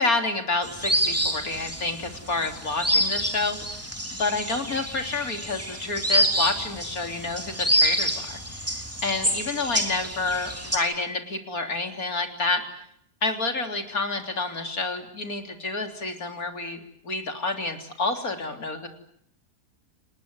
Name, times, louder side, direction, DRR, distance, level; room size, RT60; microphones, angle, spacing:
voice 1, 0.0-12.6 13.2-18.9, left 3 dB, 55° left, 5 dB, 3.9 m, -29 dB
sound 1, 0.6-10.8, right 1 dB, 10° right, 3.4 m, -27 dB
29.5 x 20.5 x 9.6 m, 0.72 s
omnidirectional pair, 1.8 m